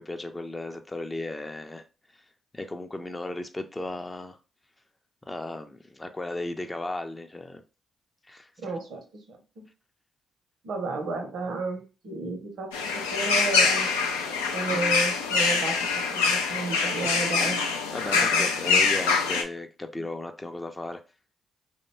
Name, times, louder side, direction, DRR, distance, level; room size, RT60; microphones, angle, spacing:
voice 1, 0.0-1.8 2.1-2.2 2.5-4.4 5.2-7.6 8.3-8.5 17.9-21.0, left 2 dB, 20° left, 6 dB, 0.4 m, -35 dB
voice 2, 8.6-9.6 10.6-13.9 14.5-17.6 18.1-18.8, right 3 dB, 70° right, 4 dB, 0.6 m, -33 dB
sound 1, 12.7-19.4, left 5 dB, 90° left, 0.3 m, -24 dB
2.5 x 2.1 x 3.0 m, 0.31 s
hypercardioid pair, 40°, 0 cm